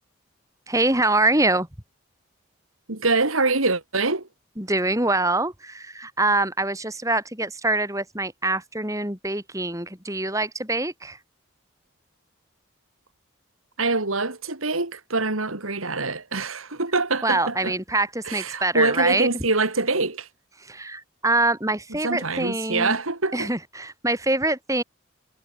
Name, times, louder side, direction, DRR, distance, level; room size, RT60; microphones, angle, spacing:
voice 1, 0.7-1.7 4.6-11.2 17.2-19.4 20.7-23.0 23.3-24.8, right 2 dB, 15° right, 7.1 m, -24 dB
voice 2, 2.9-4.3 13.8-17.7 18.2-20.3 22.0-23.5, right 3 dB, 90° right, 3.7 m, -24 dB
head